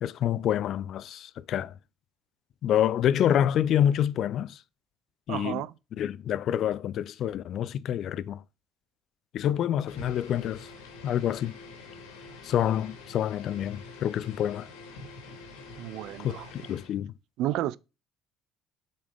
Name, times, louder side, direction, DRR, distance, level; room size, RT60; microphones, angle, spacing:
voice 1, 0.0-1.7 2.6-4.6 5.3-5.6 6.0-8.4 9.3-10.7 11.0-11.6 12.4-14.7 16.2-17.1, left 10 dB, 60° left, 0.4 m, -27 dB
voice 2, 5.3-5.7 15.8-16.5 17.4-17.8, right 14 dB, 70° right, 0.3 m, -31 dB
sound 1, 9.9-17.0, left 3 dB, 85° left, 1.8 m, -46 dB
7.2 x 4.2 x 3.5 m
hypercardioid pair, 65°, 0 cm